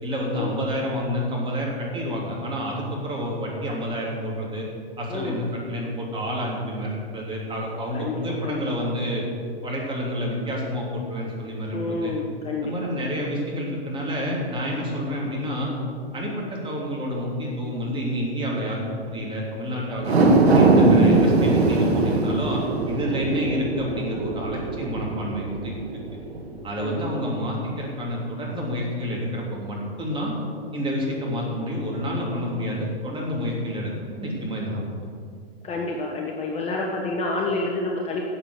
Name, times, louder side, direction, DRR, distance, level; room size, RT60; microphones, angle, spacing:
voice 1, 0.0-4.7 5.0-9.2 9.6-12.1 12.6-15.7 16.1-25.8 26.6-30.3 30.7-34.8, equal, 15° right, -3 dB, 3.0 m, -29 dB
voice 2, 5.1-5.4 7.9-8.9 11.7-12.9 26.8-27.0 35.6-38.2, left 3 dB, 20° left, -1 dB, 1.2 m, -29 dB
sound 1, 20.0-26.5 26.9-27.0, right 3 dB, 90° right, 1.8 m, -20 dB
13.0 x 7.7 x 6.4 m, 2.2 s
hypercardioid pair, 125°, 31 cm